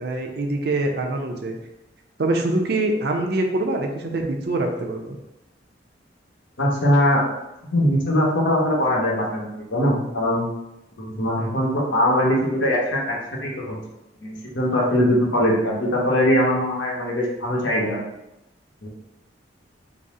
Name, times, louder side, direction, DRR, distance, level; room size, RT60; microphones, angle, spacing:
voice 1, 0.0-1.6 2.2-5.2, right 2 dB, 55° right, 3 dB, 0.5 m, -24 dB
voice 2, 6.6-7.2 7.7-10.4 11.0-13.8 14.2-18.0 18.8-18.9, equal, 85° left, -3 dB, 1.0 m, -21 dB
4.0 x 2.0 x 3.6 m, 0.92 s
head